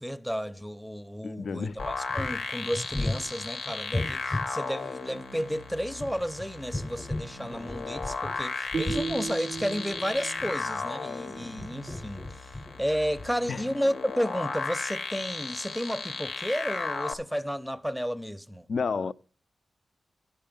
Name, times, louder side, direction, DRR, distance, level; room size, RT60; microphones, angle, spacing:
voice 1, 0.0-18.7, equal, ahead, 0.5 m, -32 dB
voice 2, 1.2-1.8 13.5-13.6 18.7-19.1, left 5 dB, 65° left, 0.4 m, -30 dB
sound 1, 1.7-4.5 5.8-8.4 8.7-10.8 11.4-12.8 13.2-13.3, left 2 dB, 30° left, 0.8 m, -36 dB
agressive bass, 1.8-17.1, left 4 dB, 90° left, 0.8 m, -36 dB
sound 2, 8.7-11.9, right 4 dB, 70° right, 0.4 m, -36 dB
11.0 x 5.5 x 5.2 m
cardioid pair, 65°, 0 cm